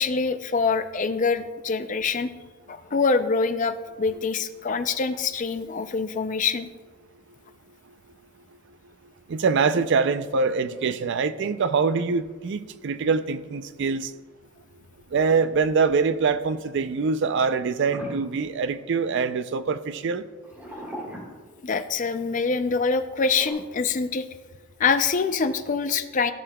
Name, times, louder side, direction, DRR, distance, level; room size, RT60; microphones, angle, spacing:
voice 1, 0.0-2.3 2.7-6.7 21.6-24.2 24.8-26.3, left 4 dB, 35° left, 0.4 m, -25 dB
voice 2, 9.3-14.1 15.1-20.2, right 5 dB, 55° right, 0.4 m, -24 dB
sound 1, 17.9-19.3 20.4-22.0 23.3-23.5, equal, 10° right, 2.8 m, -39 dB
14.5 x 6.5 x 2.3 m
head